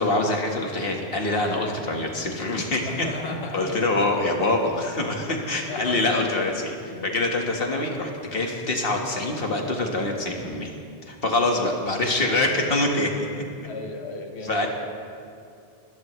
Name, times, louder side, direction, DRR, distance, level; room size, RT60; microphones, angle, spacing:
voice 1, 0.0-3.1 3.5-6.8 7.0-10.7 11.1-13.4 14.4-14.7, left 2 dB, 60° left, 1 dB, 1.8 m, -25 dB
voice 2, 2.8-3.9 5.3-7.2 13.6-14.7, left 3 dB, 90° left, 4 dB, 1.5 m, -36 dB
20.5 x 14.5 x 3.2 m, 2.4 s
omnidirectional pair, 1.1 m